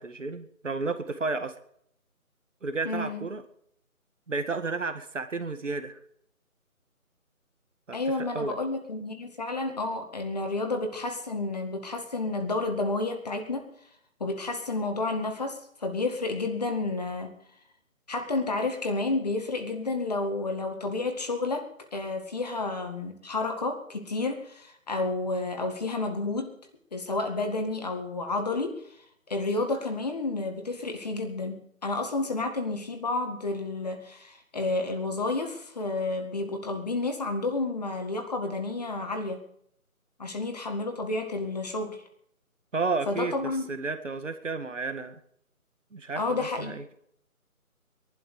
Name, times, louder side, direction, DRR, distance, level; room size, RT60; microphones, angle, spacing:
voice 1, 0.0-1.5 2.6-3.4 4.3-6.0 7.9-8.6 42.7-45.2 45.9-46.9, right 3 dB, 55° right, 9 dB, 2.0 m, -32 dB
voice 2, 2.8-3.3 7.9-13.6 14.2-17.3 18.1-21.7 21.9-26.5 26.9-28.7 29.3-39.4 40.2-42.0 43.1-43.7 46.2-46.7, left 3 dB, 30° left, 5 dB, 2.0 m, -30 dB
21.5 x 12.0 x 5.0 m, 0.69 s
figure-of-eight pair, 170°, 43 cm